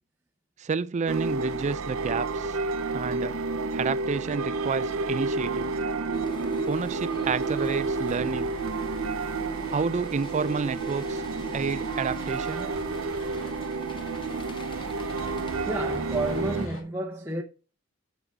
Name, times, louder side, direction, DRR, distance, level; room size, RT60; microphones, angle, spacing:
voice 1, 0.6-2.6 2.9-3.4 3.7-5.7 6.7-8.5 9.7-11.2 11.5-12.7, right 5 dB, 35° right, 0.4 m, -30 dB
sound 1, 1.1-16.7, right 3 dB, 85° right, 0.7 m, -30 dB
sound 2, 6.1-16.4, left 2 dB, 25° left, 0.7 m, -46 dB
sound 3, 7.3-16.8, left 1 dB, 70° left, 2.5 m, -47 dB
voice 2, 15.7-17.4, right 2 dB, 10° right, 0.8 m, -30 dB
6.7 x 6.0 x 4.5 m
head